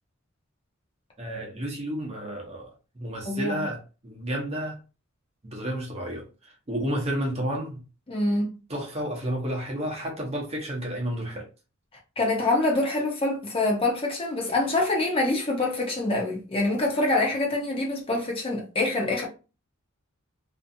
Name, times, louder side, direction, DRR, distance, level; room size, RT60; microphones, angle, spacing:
voice 1, 1.2-2.7 2.9-4.8 5.4-7.8 8.7-11.5, equal, 30° right, 0.7 m, -31 dB
voice 2, 3.3-3.6 8.1-8.5 12.2-19.3, left 2 dB, 25° left, 0.6 m, -25 dB
2.6 x 2.4 x 2.6 m
head